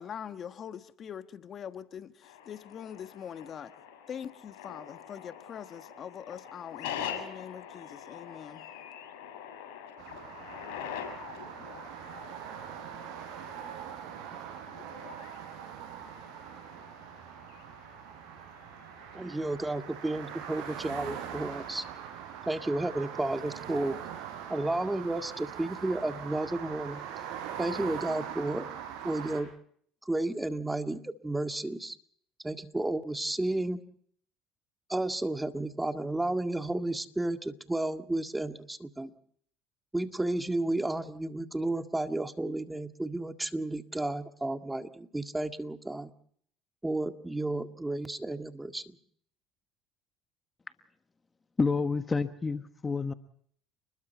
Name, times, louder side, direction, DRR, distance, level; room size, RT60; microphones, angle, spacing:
voice 1, 0.0-3.7 4.1-8.7, left 8 dB, 45° left, 10 dB, 1.2 m, -43 dB
sound 1, 2.2-21.9, left 9 dB, 80° left, 6.8 m, -45 dB
sound 2, 10.0-29.4, right 9 dB, 70° right, 5.7 m, -42 dB
voice 2, 19.1-21.8 22.5-23.9 24.5-27.0 27.6-28.7 29.0-29.5 30.1-32.0 32.4-33.8 34.9-39.1 39.9-46.1 46.8-49.0, right 2 dB, 10° right, 7 dB, 1.9 m, -32 dB
voice 3, 51.6-53.1, left 4 dB, 25° left, 9 dB, 1.2 m, -29 dB
30.0 x 21.0 x 4.5 m, 0.63 s
hypercardioid pair, 75°, 0 cm